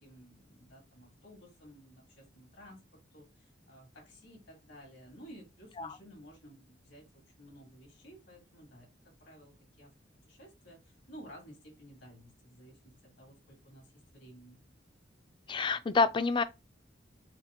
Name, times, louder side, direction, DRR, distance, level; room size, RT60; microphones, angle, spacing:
voice 1, 0.0-2.8 3.1-8.9 9.2-9.9 10.3-13.9 14.1-14.6, equal, 80° left, 2.2 m, -54 dB
voice 2, 15.5-16.4, left 4 dB, 25° left, 0.3 m, -28 dB
4.8 x 2.1 x 3.7 m
head